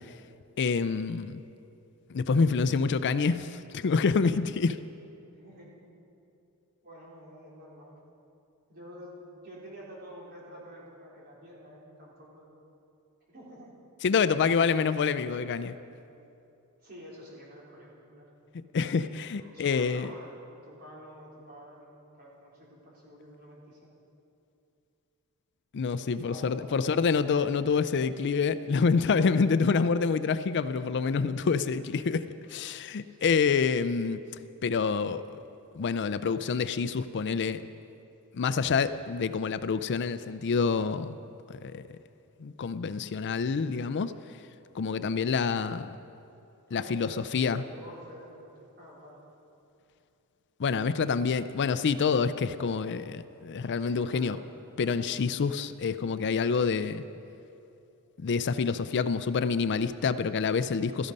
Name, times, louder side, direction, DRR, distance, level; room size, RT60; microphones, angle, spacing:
voice 1, 0.6-1.4 2.1-4.8 14.0-15.7 18.7-20.1 25.7-34.2 34.6-35.4 35.7-37.7 38.3-41.2 41.5-41.8 42.4-44.1 44.7-46.0 46.7-47.6 50.6-54.4 54.8-57.0 58.2-61.1, left 5 dB, 50° left, 13 dB, 0.4 m, -27 dB
voice 2, 5.3-5.8 6.8-8.0 8.7-12.5 13.3-13.7 16.8-18.3 19.4-23.9 26.2-27.4 33.1-33.3 46.7-49.2 53.8-55.3, equal, 45° right, -5 dB, 4.1 m, -49 dB
16.5 x 13.5 x 5.3 m, 2.7 s
head